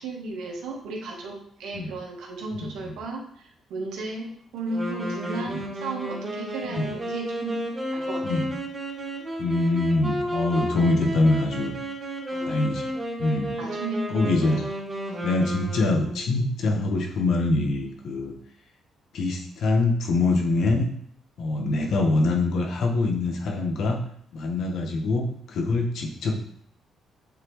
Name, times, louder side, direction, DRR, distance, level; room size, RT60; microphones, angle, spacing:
voice 1, 0.0-7.6 7.9-8.4 12.3-12.5 13.6-14.7 15.1-15.4, right 2 dB, 85° right, 0 dB, 1.5 m, -34 dB
voice 2, 2.5-2.9 5.5-5.6 6.7-6.9 8.2-8.4 9.4-11.7 12.4-12.8 13.2-13.6 14.1-14.6 15.2-18.3 19.1-20.9 21.4-24.0 24.3-26.3, left 2 dB, 70° left, 2 dB, 1.3 m, -24 dB
Wind instrument woodwind instrument, 4.7-16.4, equal, 30° right, 2.6 m, -32 dB
8.2 x 4.1 x 3.2 m, 0.64 s
cardioid pair, 90°, 0 cm